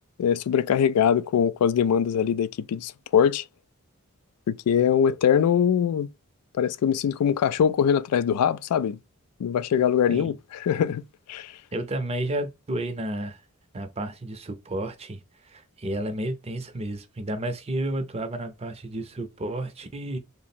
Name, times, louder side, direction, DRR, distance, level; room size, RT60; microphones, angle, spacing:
voice 1, 0.2-3.4 4.5-6.1 6.5-9.0 9.4-10.4 10.6-11.0 11.3-11.5, left 8 dB, 90° left, 0.3 m, -22 dB
voice 2, 11.7-13.4 13.7-20.2, right 1 dB, 25° right, 0.5 m, -31 dB
3.5 x 2.0 x 4.2 m
head